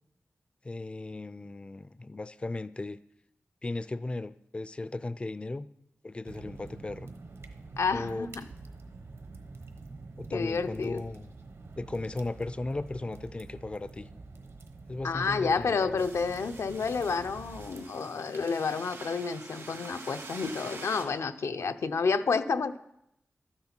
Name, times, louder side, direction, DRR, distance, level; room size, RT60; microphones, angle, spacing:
voice 1, 0.6-3.0 3.6-5.7 6.0-7.1 7.9-8.5 10.2-11.3 11.8-14.1 14.9-16.1, left 2 dB, 25° left, 15 dB, 0.3 m, -36 dB
sound 1, 6.2-17.8, right 3 dB, 70° right, 1.1 m, -47 dB
voice 2, 7.8-8.5 10.3-11.0 15.0-22.8, left 5 dB, 85° left, 9 dB, 0.6 m, -30 dB
sound 2, 16.0-21.0, right 3 dB, 90° right, 2.4 m, -45 dB
12.5 x 9.7 x 4.4 m, 0.81 s
wide cardioid pair, 130°, 5 cm